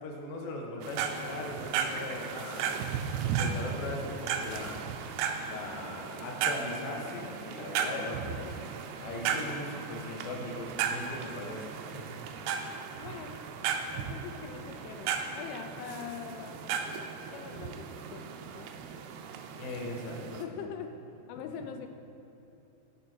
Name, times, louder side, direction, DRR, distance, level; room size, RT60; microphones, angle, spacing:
voice 1, 0.0-2.8 3.2-4.8 5.5-8.6 9.0-12.1 19.6-20.6, left 2 dB, 65° left, -1 dB, 2.6 m, -39 dB
sound 1, 0.8-20.4, right 7 dB, 90° right, 2.3 m, -36 dB
voice 2, 13.0-13.4 13.9-18.7 20.4-20.9 21.3-21.9, left 8 dB, 85° left, 6 dB, 3.0 m, -43 dB
17.0 x 6.2 x 4.6 m, 2.9 s
omnidirectional pair, 5.4 m